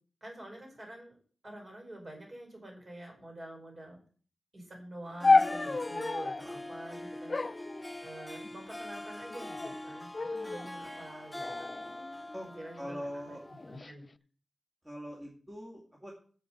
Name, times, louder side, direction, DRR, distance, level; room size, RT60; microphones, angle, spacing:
voice 1, 0.2-1.2 1.4-4.0 4.5-7.3 8.0-11.7 12.4-13.4 13.7-14.1, right 1 dB, 40° right, 0 dB, 5.3 m, -47 dB
Harp, 5.0-13.8, left 1 dB, 5° left, 0.7 m, -44 dB
sound 1, 5.2-6.5 7.3-8.5 9.3-9.8 10.1-10.7 11.4-12.7 13.5-13.9, left 3 dB, 35° left, 0.4 m, -30 dB
voice 2, 12.8-13.4 14.8-16.1, equal, 15° right, -2 dB, 2.5 m, -42 dB
8.1 x 7.4 x 7.0 m, 0.43 s
wide cardioid pair, 100°, 0 cm